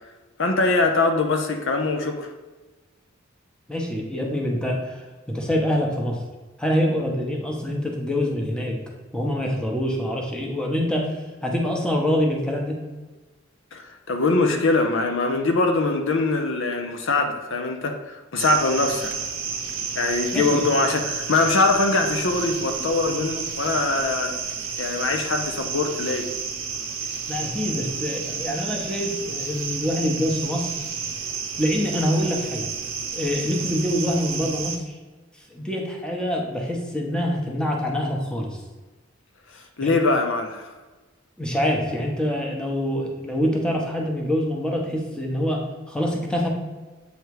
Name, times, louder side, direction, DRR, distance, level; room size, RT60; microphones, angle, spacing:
voice 1, 0.4-2.3 13.7-19.1 20.0-24.3 24.8-26.3 39.8-40.7, left 3 dB, 65° left, 4 dB, 0.7 m, -22 dB
voice 2, 3.7-6.2 6.6-8.8 9.1-11.1 11.4-12.8 20.3-20.7 27.3-30.7 31.6-32.7 33.1-34.9 35.5-38.6 39.8-39.9 41.4-46.5, equal, 5° left, -1 dB, 0.9 m, -25 dB
sound 1, 18.4-34.8, right 5 dB, 70° right, 0.7 m, -31 dB
8.0 x 3.2 x 4.7 m, 1.3 s
head